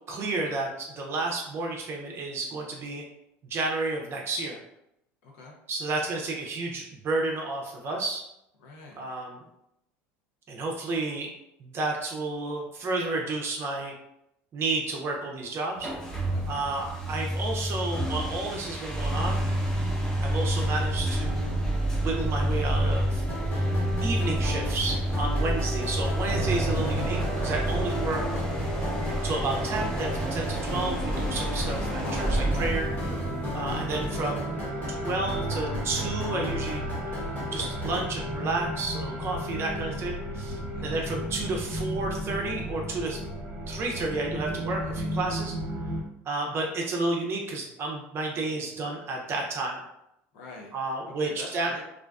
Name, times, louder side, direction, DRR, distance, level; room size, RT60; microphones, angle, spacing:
voice 1, 0.1-3.0 3.5-4.6 5.7-8.2 9.0-9.4 10.5-11.3 11.6-13.9 14.5-15.9 16.5-19.4 20.2-23.2 23.5-23.6 24.0-28.4 29.2-32.9 33.2-33.3 33.5-36.8 37.4-43.2 43.7-45.5 46.3-49.8 50.7-51.7, right 2 dB, 40° right, 0 dB, 0.5 m, -31 dB
voice 2, 5.2-5.5 8.6-9.1 16.3-16.8 33.5-33.7 39.6-39.9 40.7-41.0 44.8-45.1 50.3-50.8 51.2-51.8, left 3 dB, 75° left, -1 dB, 0.6 m, -46 dB
sound 1, 15.8-34.3, right 1 dB, 10° left, 0.7 m, -29 dB
sound 2, 23.3-38.1, left 1 dB, 30° left, 1.0 m, -36 dB
sound 3, 26.3-46.0, right 1 dB, 20° right, 0.9 m, -34 dB
2.4 x 2.2 x 2.3 m, 0.81 s
supercardioid pair, 105°, 6 cm